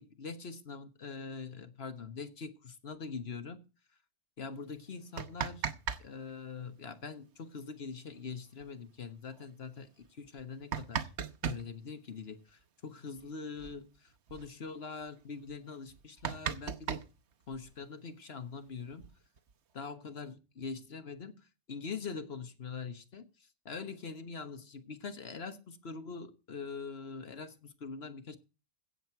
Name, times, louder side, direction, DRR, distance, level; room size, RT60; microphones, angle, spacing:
voice 1, 0.0-3.6 4.4-5.7 6.0-11.1 11.4-17.1 17.5-19.1 19.7-28.4, left 5 dB, 55° left, 1.4 m, -43 dB
sound 1, 5.0-6.0 6.3-6.4 8.2-8.3 8.6-8.7 9.3-9.4 10.2-11.6 13.2-13.3 13.6-13.8 14.1-14.5 15.0-15.1 15.5-15.6 15.9-17.8 18.7-19.5, right 7 dB, 65° right, 1.2 m, -37 dB
16.0 x 7.5 x 4.5 m
omnidirectional pair, 1.3 m